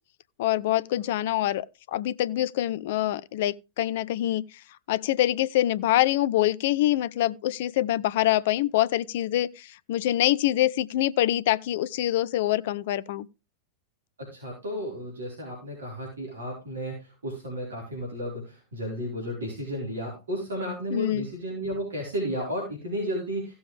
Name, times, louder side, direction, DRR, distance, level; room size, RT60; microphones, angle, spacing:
voice 1, 0.4-4.4 4.9-13.3 20.9-21.3, left 14 dB, 55° left, 0.4 m, -25 dB
voice 2, 14.2-23.5, equal, 70° right, 4.2 m, -33 dB
15.5 x 7.1 x 3.2 m
figure-of-eight pair, 90°, 0 cm